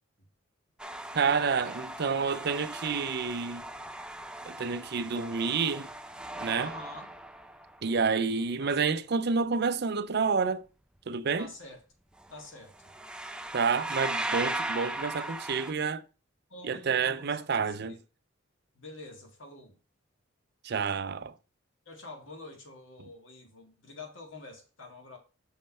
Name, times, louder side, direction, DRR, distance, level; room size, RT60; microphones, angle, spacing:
sound 1, 0.8-7.9 12.2-12.4 12.7-15.7, right 1 dB, 5° right, 0.4 m, -38 dB
voice 1, 1.1-3.6 4.4-5.9 6.4-6.7 7.8-10.7 11.1-11.5 13.5-16.0 16.7-18.0 20.6-21.3, right 5 dB, 55° right, 0.5 m, -29 dB
voice 2, 6.6-7.1 8.6-9.2 11.4-11.8 12.3-13.0 16.5-18.0 18.7-19.8 21.9-25.2, left 2 dB, 70° left, 2.0 m, -47 dB
6.5 x 5.4 x 4.2 m
head